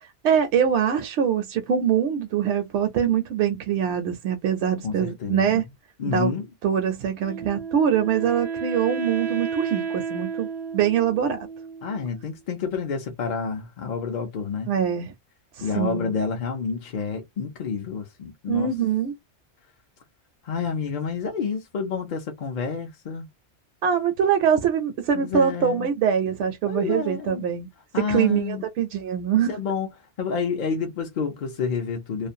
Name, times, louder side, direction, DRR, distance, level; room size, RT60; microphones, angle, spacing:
voice 1, 0.0-5.7 6.1-6.3 6.6-10.5 10.7-11.5 14.7-15.1 15.6-16.1 18.5-19.1 23.8-27.7 28.0-29.6, right 8 dB, 75° right, 0.8 m, -23 dB
voice 2, 4.8-5.5 6.0-6.5 11.8-14.7 15.6-18.7 20.4-23.3 25.1-25.9 26.6-27.4 27.9-28.6 29.5-29.9 30.2-32.3, left 5 dB, 50° left, 0.6 m, -29 dB
Wind instrument woodwind instrument, 7.2-12.3, right 6 dB, 50° right, 0.5 m, -32 dB
2.4 x 2.1 x 2.6 m
omnidirectional pair, 1.2 m